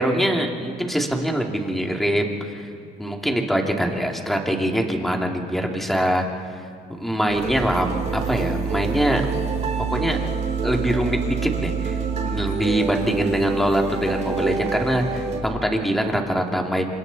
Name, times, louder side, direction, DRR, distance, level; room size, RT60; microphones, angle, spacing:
voice 1, 0.0-2.7 3.0-6.6 6.9-9.2 9.9-10.3 10.6-12.0 12.2-16.9, right 1 dB, ahead, 1 dB, 2.5 m, -23 dB
sound 1, 7.3-15.4, right 5 dB, 45° right, 3.8 m, -27 dB
29.0 x 26.5 x 4.1 m, 2.4 s
cardioid pair, 110°, 17 cm